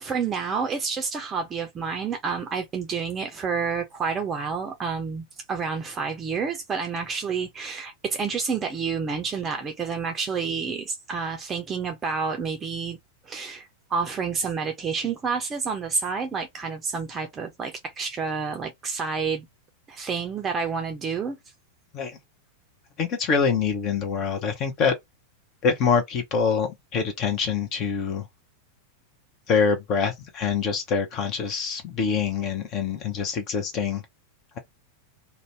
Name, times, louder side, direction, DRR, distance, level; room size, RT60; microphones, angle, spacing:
voice 1, 0.0-13.0 13.3-19.5 19.9-21.4, right 5 dB, 20° right, 0.6 m, -29 dB
voice 2, 23.0-24.9 25.6-28.2 29.5-34.0, left 6 dB, 35° left, 0.8 m, -25 dB
2.6 x 2.2 x 3.2 m
figure-of-eight pair, 90°, 0 cm